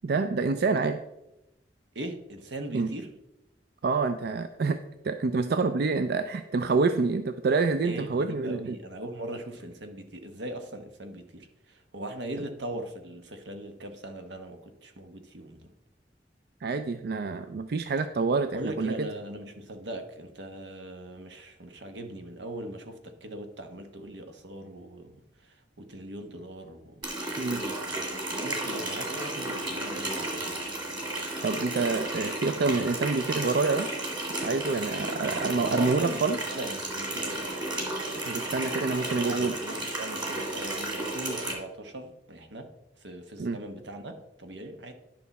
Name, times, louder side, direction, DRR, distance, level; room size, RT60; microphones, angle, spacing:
voice 1, 0.0-1.0 2.7-3.0 3.8-4.8 5.0-8.8 16.6-19.1 27.4-27.6 31.4-33.9 34.4-36.4 38.3-39.6 43.4-43.6, right 4 dB, 60° right, 9 dB, 0.4 m, -27 dB
voice 2, 1.9-3.1 7.8-11.5 11.9-15.7 18.5-25.1 25.8-27.0 27.3-30.7 35.7-36.2 36.5-37.5 39.1-42.7 43.0-44.9, right 1 dB, 85° right, 6 dB, 1.1 m, -40 dB
Water tap faucet, 27.0-41.5, right 1 dB, 25° right, 1.9 m, -33 dB
10.5 x 5.7 x 4.1 m, 0.92 s
head